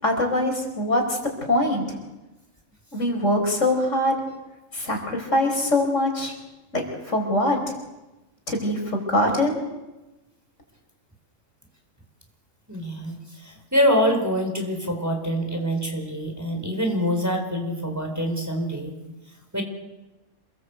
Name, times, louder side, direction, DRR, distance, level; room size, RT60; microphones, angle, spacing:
voice 1, 0.0-2.0 2.9-4.2 4.7-6.3 6.7-7.7 8.5-9.6, left 1 dB, 65° left, 3 dB, 5.4 m, -23 dB
voice 2, 12.7-18.9 19.5-19.6, equal, 10° right, 3 dB, 4.5 m, -25 dB
27.5 x 21.0 x 8.1 m, 1.0 s
omnidirectional pair, 1.4 m